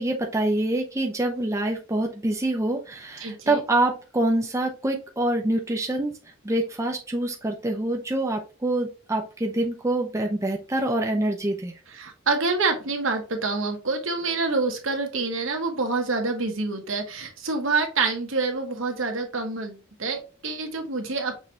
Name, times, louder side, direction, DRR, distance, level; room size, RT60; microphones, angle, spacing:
voice 1, 0.0-6.1 6.4-11.7, right 1 dB, 15° right, 2 dB, 0.6 m, -26 dB
voice 2, 3.2-3.6 11.9-21.4, right 3 dB, 70° right, 4 dB, 1.2 m, -27 dB
6.1 x 3.2 x 2.7 m, 0.32 s
head